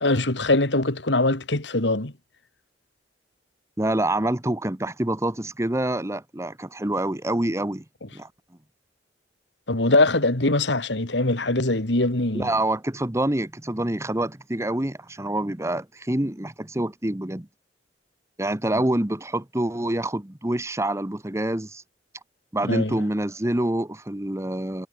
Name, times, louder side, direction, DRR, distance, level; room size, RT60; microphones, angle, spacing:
voice 1, 0.0-2.1 9.7-12.5 22.7-23.0, left 2 dB, 80° left, 2.7 m, -22 dB
voice 2, 3.8-7.8 8.1-8.3 12.3-17.5 18.4-21.8 22.5-24.9, right 1 dB, 15° right, 1.1 m, -26 dB
head